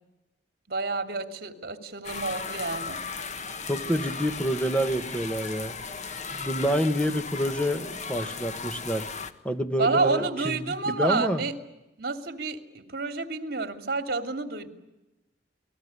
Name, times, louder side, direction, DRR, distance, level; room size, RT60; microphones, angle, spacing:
voice 1, 0.7-3.1 9.8-11.5 12.0-14.7, right 3 dB, 60° right, 7 dB, 2.9 m, -29 dB
sound 1, 2.0-9.3, left 5 dB, 40° left, 1.4 m, -36 dB
voice 2, 3.7-5.8 6.3-9.1 9.4-11.4, equal, 5° left, 8 dB, 1.8 m, -28 dB
29.0 x 20.0 x 9.8 m, 0.96 s
head